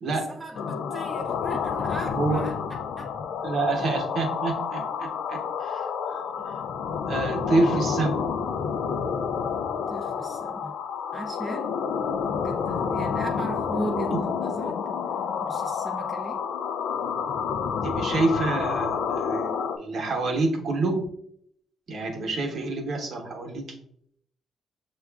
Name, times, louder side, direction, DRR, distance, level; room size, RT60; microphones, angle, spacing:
voice 1, 0.1-2.6 3.0-3.1 6.4-6.5 9.9-10.8 11.1-11.8 12.3-14.8 15.4-16.5, right 2 dB, 15° right, 0.5 m, -37 dB
sound 1, 0.6-19.8, left 6 dB, 75° left, 0.4 m, -29 dB
voice 2, 3.4-6.2 7.1-8.2 14.1-14.2 17.8-21.1 21.9-23.7, right 3 dB, 60° right, 0.9 m, -27 dB
6.2 x 2.4 x 2.3 m
cardioid pair, 90°, 0 cm